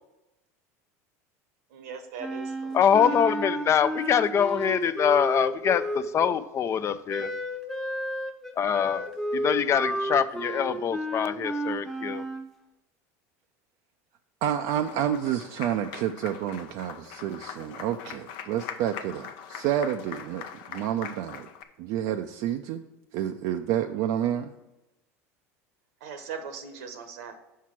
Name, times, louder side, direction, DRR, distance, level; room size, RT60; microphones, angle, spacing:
voice 1, 1.7-3.1 26.0-27.4, right 6 dB, 80° right, 8 dB, 1.1 m, -40 dB
Wind instrument woodwind instrument, 2.2-6.4 7.1-12.5, right 1 dB, 5° left, 0.8 m, -32 dB
voice 2, 2.7-7.3 8.6-9.1 9.3-12.2, left 8 dB, 35° left, 13 dB, 0.4 m, -24 dB
voice 3, 14.4-21.5 21.8-22.8 23.1-24.5, right 10 dB, 65° right, 6 dB, 0.4 m, -29 dB
Applause, 14.7-21.6, left 8 dB, 70° left, 0.7 m, -42 dB
5.8 x 4.6 x 5.9 m, 0.95 s
hypercardioid pair, 95°, 8 cm